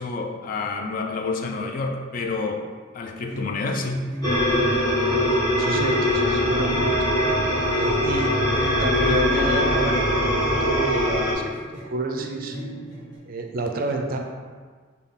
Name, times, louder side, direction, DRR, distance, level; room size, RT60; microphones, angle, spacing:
voice 1, 0.0-2.6 2.9-4.0, left 3 dB, 45° left, 3 dB, 0.3 m, -28 dB
sound 1, 3.2-13.2, equal, 65° left, 1.3 m, -37 dB
sound 2, 4.2-11.3, left 1 dB, 20° left, 0.9 m, -22 dB
voice 2, 5.5-7.0 7.7-9.9 10.2-11.4 11.9-12.5 13.3-14.2, right 3 dB, 45° right, 3 dB, 0.4 m, -29 dB
3.5 x 2.3 x 3.5 m, 1.5 s
head